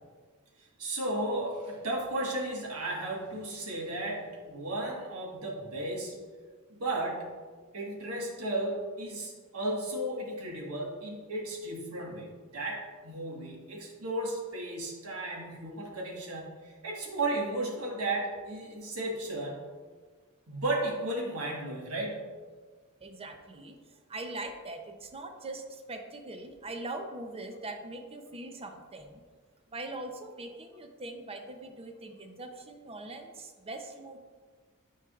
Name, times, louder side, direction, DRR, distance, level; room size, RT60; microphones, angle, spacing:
voice 1, 0.6-6.1 6.7-7.3 7.7-19.6 20.5-22.2, right 1 dB, 80° right, -2 dB, 1.4 m, -34 dB
voice 2, 23.0-23.8 24.1-29.2 29.7-34.2, right 2 dB, 25° right, 5 dB, 0.5 m, -41 dB
9.8 x 4.7 x 2.4 m, 1.5 s
head